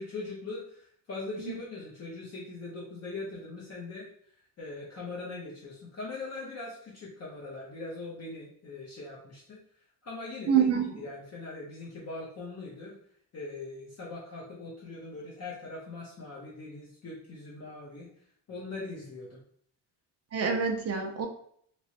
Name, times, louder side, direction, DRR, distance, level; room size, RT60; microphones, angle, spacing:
voice 1, 0.0-4.1 4.6-9.6 10.0-12.9 13.3-18.1 18.5-19.4, left 3 dB, 35° left, -5 dB, 0.7 m, -41 dB
voice 2, 10.5-10.8 20.3-21.3, right 7 dB, 35° right, 5 dB, 0.4 m, -26 dB
3.1 x 2.9 x 2.8 m, 0.63 s
cardioid pair, 175°, 45 cm